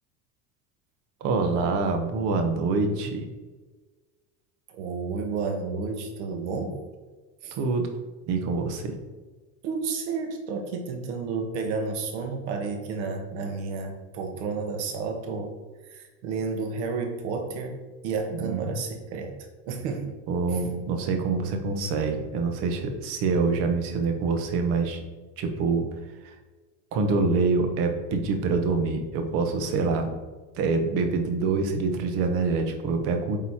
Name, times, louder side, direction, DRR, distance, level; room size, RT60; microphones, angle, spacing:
voice 1, 1.2-3.2 7.5-7.9 8.3-9.0 15.3-15.4 18.3-18.8 20.3-25.0 25.4-25.9 26.2-26.3 26.9-30.1 30.6-33.4, right 4 dB, 40° right, 5 dB, 0.9 m, -26 dB
voice 2, 4.7-6.8 7.4-7.5 9.6-15.6 15.8-19.3 19.7-20.2, right 4 dB, 80° right, 5 dB, 1.3 m, -31 dB
8.4 x 3.1 x 4.3 m, 1.3 s
cardioid pair, 175°, 34 cm